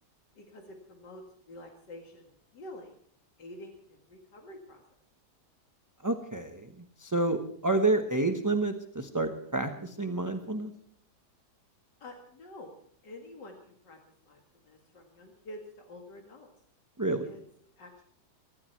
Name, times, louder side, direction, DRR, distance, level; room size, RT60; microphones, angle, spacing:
voice 1, 0.4-2.3 2.5-2.9 3.4-3.8 4.1-4.8 12.0-12.7 13.0-14.0 14.3-14.4 14.7-16.5 17.2-17.4 17.8-18.0, left 1 dB, 80° left, 2 dB, 2.5 m, -47 dB
voice 2, 6.0-6.7 7.0-10.7 17.0-17.3, right 2 dB, 15° right, 5 dB, 0.8 m, -29 dB
24.5 x 12.5 x 4.5 m, 0.63 s
omnidirectional pair, 1.8 m